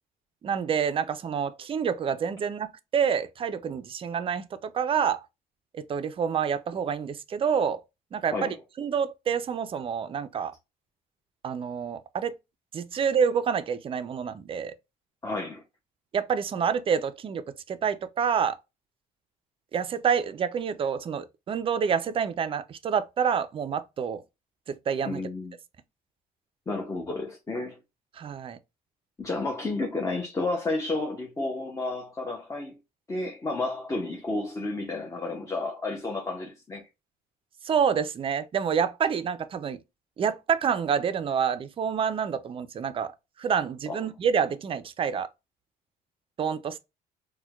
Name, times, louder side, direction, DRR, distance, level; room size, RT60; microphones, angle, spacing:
voice 1, 0.4-5.2 5.7-7.8 8.1-10.5 11.4-12.4 12.7-14.7 16.1-18.6 19.7-24.2 24.7-25.2 28.2-28.6 37.6-39.8 40.2-45.3 46.4-46.8, right 7 dB, 35° right, 0.4 m, -28 dB
voice 2, 15.2-15.6 25.0-25.5 26.7-27.8 29.2-32.8 33.1-36.9 43.9-44.0, left 2 dB, 20° left, 0.6 m, -31 dB
4.3 x 2.2 x 2.3 m
cardioid pair, 110°, 17 cm